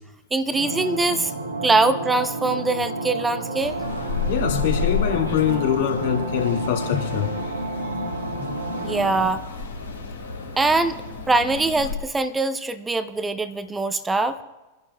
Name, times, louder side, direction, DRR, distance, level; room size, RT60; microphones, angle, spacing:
voice 1, 0.3-1.3 1.6-3.8 8.8-9.4 10.6-11.0 11.3-14.4, right 3 dB, 10° right, 12 dB, 0.6 m, -22 dB
sound 1, 0.5-9.3, right 2 dB, 85° right, 1.6 m, -30 dB
sound 2, 3.6-11.9, left 4 dB, 80° left, 2.8 m, -31 dB
voice 2, 4.3-7.3 8.4-8.6, left 9 dB, 55° left, 2 dB, 2.1 m, -24 dB
29.5 x 11.0 x 2.2 m, 1.2 s
figure-of-eight pair, 90°, 0 cm